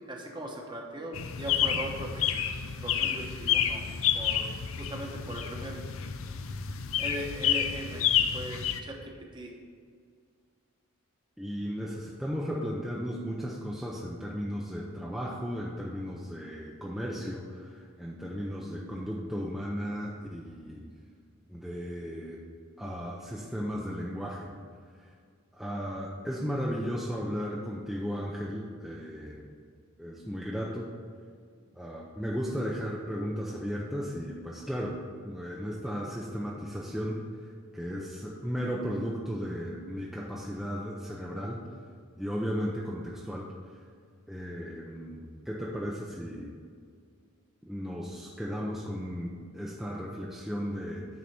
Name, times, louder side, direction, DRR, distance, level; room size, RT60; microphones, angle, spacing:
voice 1, 0.1-2.4 2.8-3.8 4.1-4.5 4.8-5.8 7.0-8.1 8.3-9.5, right 1 dB, 20° right, 1 dB, 1.0 m, -39 dB
sound 1, 1.1-8.8, left 9 dB, 70° left, 0.5 m, -29 dB
voice 2, 11.4-20.8 21.5-22.4 22.8-24.5 25.5-29.5 30.0-30.9 31.7-35.0 35.2-37.2 37.7-41.6 42.2-43.5 44.3-46.5 47.6-51.1, equal, ahead, -4 dB, 0.6 m, -35 dB
9.4 x 4.1 x 5.9 m, 2.1 s
head